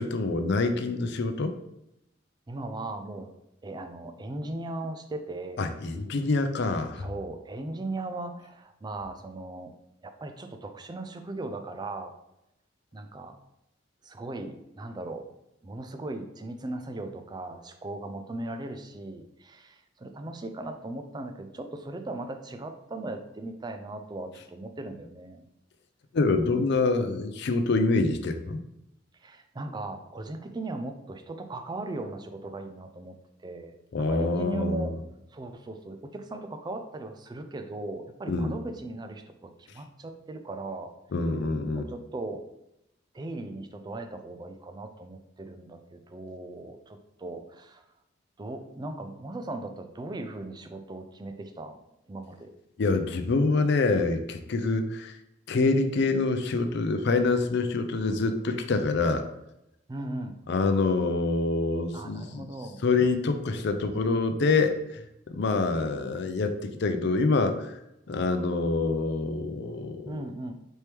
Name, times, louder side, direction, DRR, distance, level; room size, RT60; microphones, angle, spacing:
voice 1, 0.0-1.5 5.6-7.1 26.1-28.6 33.9-34.9 38.3-38.6 41.1-41.9 52.8-55.2 55.5-59.2 60.5-62.5 62.8-65.0 65.3-67.7 68.1-70.2, left 3 dB, 60° left, 7 dB, 0.5 m, -26 dB
voice 2, 2.5-3.3 3.6-5.7 7.0-9.7 10.0-12.1 12.9-13.3 14.0-15.3 15.6-25.4 29.2-33.2 33.4-35.0 35.3-40.9 41.7-42.4 43.1-47.8 48.4-51.8 52.1-52.5 59.9-60.4 61.9-62.8 70.1-70.5, right 2 dB, 20° right, 7 dB, 0.4 m, -38 dB
4.4 x 3.0 x 3.4 m, 0.84 s
head